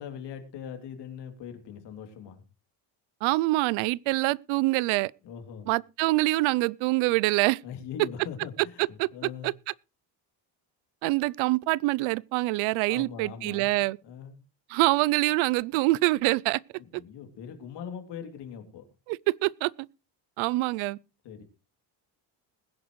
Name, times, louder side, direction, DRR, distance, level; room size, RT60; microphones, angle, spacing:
voice 1, 0.0-2.4 5.2-5.7 7.6-9.5 12.9-13.8 14.0-14.4 16.8-18.8 21.2-21.4, left 7 dB, 60° left, 3.0 m, -41 dB
voice 2, 3.2-5.1 5.7-7.6 9.0-9.1 9.4-9.5 11.0-14.0 14.7-16.6 19.1-19.7 20.4-21.0, right 21 dB, 85° right, 0.6 m, -25 dB
21.0 x 10.0 x 3.1 m
cardioid pair, 150°, 47 cm